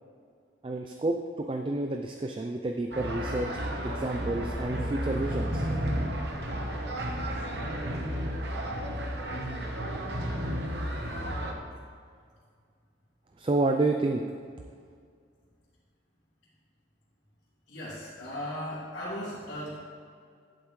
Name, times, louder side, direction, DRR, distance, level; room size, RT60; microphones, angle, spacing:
voice 1, 0.6-3.5 3.8-5.7 13.4-14.2, right 2 dB, 25° right, 4 dB, 0.3 m, -29 dB
sound 1, 2.9-11.5, equal, 65° right, 1.0 m, -32 dB
voice 2, 17.7-19.8, equal, 75° left, -11 dB, 2.6 m, -37 dB
11.0 x 8.3 x 3.2 m, 2.1 s
head